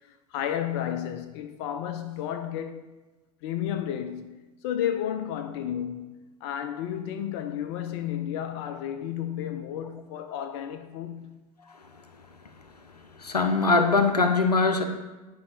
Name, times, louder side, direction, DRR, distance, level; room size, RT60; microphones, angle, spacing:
voice 1, 0.3-2.9 3.4-11.4, left 10 dB, 45° left, 0.6 m, -32 dB
voice 2, 13.2-14.8, left 3 dB, 85° left, 0.6 m, -22 dB
11.0 x 4.8 x 2.7 m
figure-of-eight pair, 85°, 20 cm